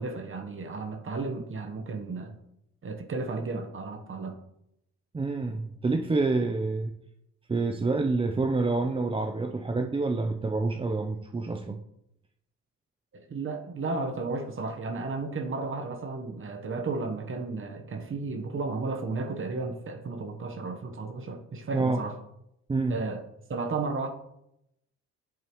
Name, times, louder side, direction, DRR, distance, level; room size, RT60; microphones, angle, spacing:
voice 1, 0.0-2.4 2.8-4.4 13.1-22.2 22.9-23.2 23.5-24.1, right 3 dB, 45° right, 4 dB, 1.1 m, -33 dB
voice 2, 5.1-6.9 7.5-11.8 21.7-22.0 22.7-23.0, right 3 dB, 20° right, 4 dB, 0.6 m, -27 dB
8.6 x 7.3 x 3.1 m, 0.81 s
cardioid pair, 90°, 30 cm